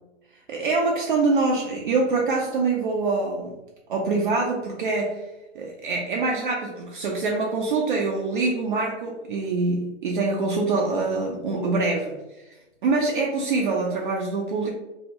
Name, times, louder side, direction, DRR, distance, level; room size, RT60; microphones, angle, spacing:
voice 1, 0.5-3.6 3.9-5.3 5.5-12.2 12.8-14.7, right 3 dB, 45° right, -1 dB, 0.4 m, -24 dB
2.7 x 2.1 x 2.8 m, 1.0 s
hypercardioid pair, 130°, 36 cm